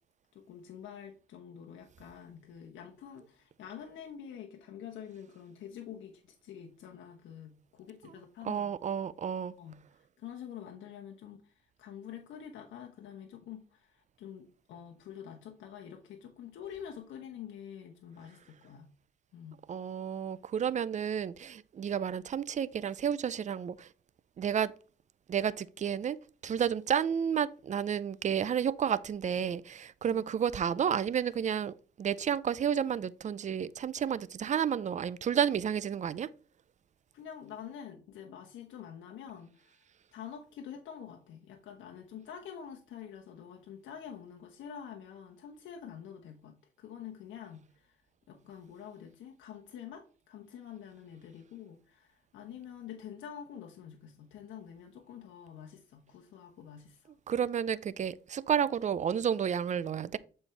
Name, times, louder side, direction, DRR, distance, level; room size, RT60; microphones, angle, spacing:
voice 1, 0.3-8.7 9.6-18.9 19.3-19.6 30.0-30.2 37.1-39.8 40.1-48.0 48.3-57.1, left 8 dB, 75° left, 1.0 m, -47 dB
voice 2, 8.4-9.5 19.7-23.9 24.4-24.7 25.3-26.2 26.4-36.3 57.3-60.2, right 8 dB, 35° right, 0.4 m, -31 dB
7.3 x 4.4 x 3.3 m
cardioid pair, 90°, 20 cm